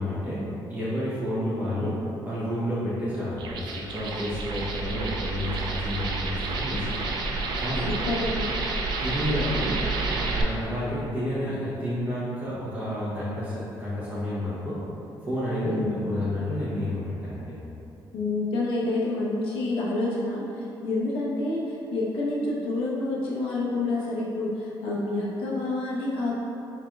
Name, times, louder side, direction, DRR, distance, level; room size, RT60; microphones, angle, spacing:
voice 1, 0.0-6.9 7.6-7.9 9.0-14.8 15.2-17.5, left 1 dB, 20° right, -10 dB, 0.8 m, -30 dB
sound 1, 3.3-10.4, right 3 dB, 55° right, 0.4 m, -30 dB
voice 2, 8.1-8.5 15.6-16.0 18.1-26.3, left 2 dB, 85° left, -5 dB, 0.9 m, -28 dB
4.5 x 3.9 x 2.3 m, 2.8 s
cardioid pair, 175°, 9 cm